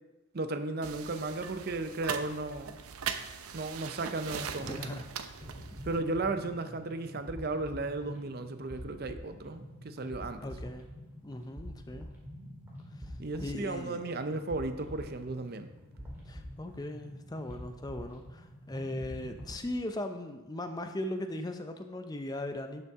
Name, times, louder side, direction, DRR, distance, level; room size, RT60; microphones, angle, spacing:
voice 1, 0.3-2.8 3.5-5.0 5.8-10.4 13.2-15.7, right 2 dB, 45° right, 9 dB, 0.6 m, -35 dB
sound 1, 0.8-6.0, right 7 dB, 85° right, 0.6 m, -40 dB
voice 2, 4.6-5.1 10.4-10.9 11.2-12.1 12.9-13.1 13.4-14.0 16.2-22.8, left 1 dB, 20° left, 7 dB, 0.4 m, -38 dB
sound 2, 5.4-19.6, equal, 10° right, 2.0 m, -46 dB
11.5 x 5.5 x 3.6 m, 1.1 s
head